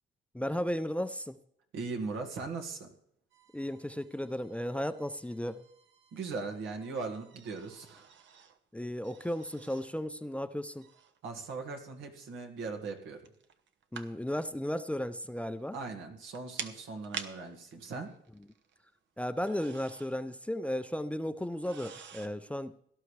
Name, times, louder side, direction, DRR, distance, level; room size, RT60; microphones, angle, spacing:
voice 1, 0.3-1.4 3.5-5.6 8.7-10.9 13.9-15.8 19.2-22.7, equal, 5° left, 0.5 m, -35 dB
voice 2, 1.7-2.9 6.1-8.1 11.2-13.2 15.7-18.1, right 4 dB, 85° right, 2.0 m, -39 dB
sound 1, 3.3-8.6 9.0-10.0 10.8-11.2 13.0-14.1 14.5-14.6 15.9-16.0 16.2-18.9 19.2-20.2 20.6-20.7 21.5-22.3, right 7 dB, 70° right, 1.0 m, -48 dB
17.5 x 11.5 x 3.3 m
cardioid pair, 90°, 20 cm